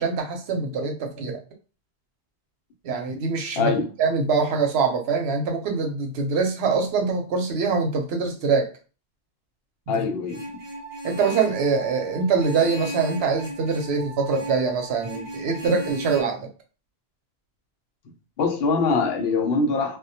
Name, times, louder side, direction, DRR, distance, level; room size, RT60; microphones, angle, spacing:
voice 1, 0.0-1.4 2.8-3.7 4.0-8.7 9.9-10.0 11.0-16.5, right 4 dB, 80° right, 0.8 m, -24 dB
voice 2, 3.6-3.9 9.9-10.4 18.4-20.0, left 4 dB, 75° left, 0.8 m, -23 dB
sound 1, 10.3-15.9, right 2 dB, 30° left, 0.5 m, -42 dB
Vehicle horn car horn honking, 10.3-11.6 12.4-14.0 14.3-14.7 15.0-16.2, equal, 30° right, 0.5 m, -36 dB
2.1 x 2.1 x 2.7 m
omnidirectional pair, 1.0 m